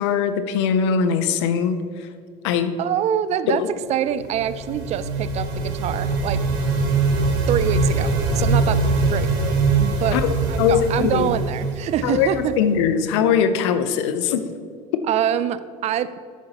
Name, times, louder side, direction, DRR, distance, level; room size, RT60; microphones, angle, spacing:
voice 1, 0.0-1.8 2.4-2.8 3.5-3.7 10.1-10.3 10.6-11.3 12.0-14.4 14.9-15.0, left 7 dB, 85° left, 10 dB, 0.7 m, -21 dB
voice 2, 2.8-3.6 3.9-6.4 7.5-8.8 9.1-9.3 9.8-10.2 10.5-12.6 15.0-16.2, right 10 dB, 50° right, 15 dB, 0.5 m, -25 dB
sound 1, 4.1-12.9, right 3 dB, 70° right, 1.6 m, -22 dB
10.5 x 7.9 x 3.0 m, 2.3 s
supercardioid pair, 90°, 15 cm